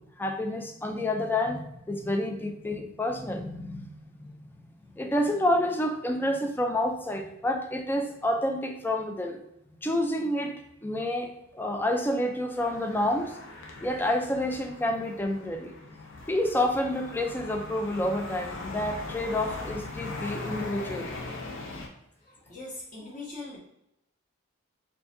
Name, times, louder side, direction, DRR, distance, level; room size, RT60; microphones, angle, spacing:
voice 1, 0.2-3.9 4.2-4.3 5.0-9.4 9.8-13.3 13.8-15.7 16.3-21.1, left 1 dB, 10° left, 4 dB, 0.4 m, -29 dB
sound 1, 12.5-21.9, left 2 dB, 60° left, 0.7 m, -40 dB
voice 2, 22.2-23.6, left 2 dB, 40° left, -5 dB, 1.4 m, -41 dB
4.5 x 2.7 x 2.6 m, 0.83 s
head